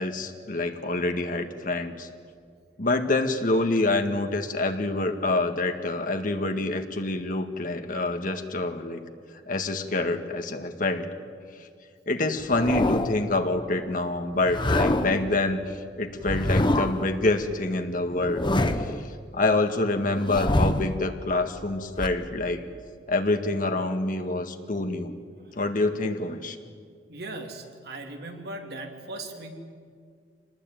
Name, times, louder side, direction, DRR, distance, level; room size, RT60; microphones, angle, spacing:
voice 1, 0.0-2.1 2.8-9.0 9.5-11.1 12.1-18.5 18.7-18.9 19.3-22.6 23.1-25.1 25.5-26.6, left 2 dB, 50° left, 6 dB, 1.9 m, -26 dB
sound 1, 12.4-13.3 14.4-15.3 16.2-17.1 18.1-19.0 20.1-21.0 22.0-22.1, left 1 dB, 25° left, 1.1 m, -25 dB
voice 2, 27.1-29.5, right 2 dB, 65° right, 3 dB, 2.9 m, -38 dB
26.5 x 19.5 x 9.2 m, 2.1 s
head